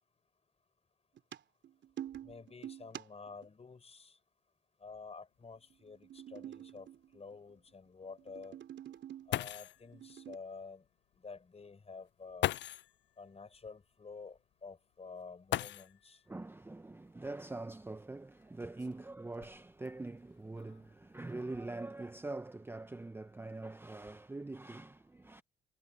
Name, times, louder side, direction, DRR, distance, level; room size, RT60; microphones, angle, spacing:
sound 1, 1.2-3.4 5.7-7.5 8.0-9.4 9.8-10.4, right 11 dB, 65° right, 3.1 m, -47 dB
voice 1, 2.2-4.2 4.8-6.9 7.1-8.6 9.3-10.8 11.2-12.5 13.2-16.2, left 4 dB, 30° left, 4.7 m, -50 dB
sound 2, 5.4-5.5 5.9-6.0 6.6-6.7 9.0-9.1 9.3-9.9 11.1-11.2 12.4-13.0 15.4-16.2 17.6-17.7 18.4-19.9 20.6-20.9 21.3-21.7, left 14 dB, 65° left, 0.4 m, -38 dB
voice 2, 16.3-25.4, right 2 dB, 10° right, 0.7 m, -44 dB
cardioid pair, 90°, 20 cm